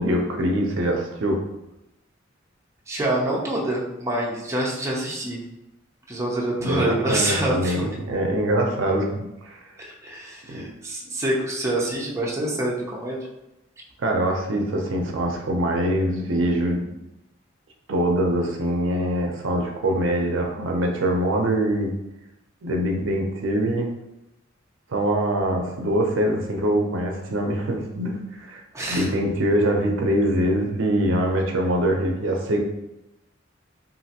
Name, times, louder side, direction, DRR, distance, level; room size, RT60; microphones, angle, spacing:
voice 1, 0.0-1.4 6.6-9.6 10.5-10.7 14.0-16.9 17.9-21.9 22.6-23.9 24.9-28.6 28.9-32.6, right 1 dB, 75° right, 2 dB, 0.5 m, -23 dB
voice 2, 2.9-5.4 6.1-8.0 9.8-13.2 28.7-29.1, right 1 dB, 15° right, -4 dB, 0.6 m, -26 dB
3.1 x 2.5 x 2.8 m, 0.92 s
head